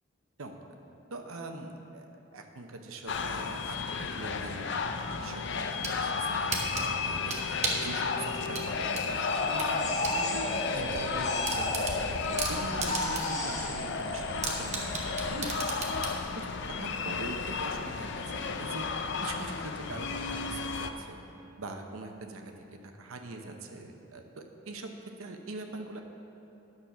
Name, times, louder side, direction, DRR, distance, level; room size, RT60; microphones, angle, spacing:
voice 1, 1.1-2.1 2.3-4.7 5.2-15.5 16.3-21.2 21.6-24.9 25.2-26.0, right 2 dB, 75° right, 4 dB, 0.8 m, -42 dB
sound 1, 3.1-20.9, left 5 dB, 55° left, 0.5 m, -33 dB
sound 2, 5.5-6.0 6.5-7.9 8.5-10.2 10.6-10.7 11.0-11.1 11.4-13.4 13.8-13.9 14.4-16.2, right 4 dB, 30° right, 1.0 m, -34 dB
sound 3, 9.3-12.5 12.9-15.7, left 1 dB, 35° left, 1.2 m, -34 dB
9.7 x 6.5 x 5.8 m, 2.9 s
head